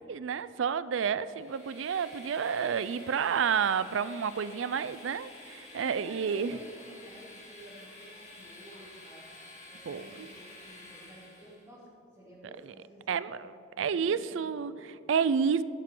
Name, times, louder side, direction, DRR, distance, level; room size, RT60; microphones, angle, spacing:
voice 1, 0.1-6.6 9.9-10.3 13.1-13.5 13.8-15.6, right 6 dB, 85° right, 16 dB, 0.4 m, -30 dB
Train, 1.2-11.7, left 2 dB, 35° left, 2.8 m, -50 dB
voice 2, 5.8-9.2 9.7-13.5 13.7-14.6, equal, 15° right, -10 dB, 2.9 m, -52 dB
16.0 x 12.0 x 3.8 m, 2.8 s
head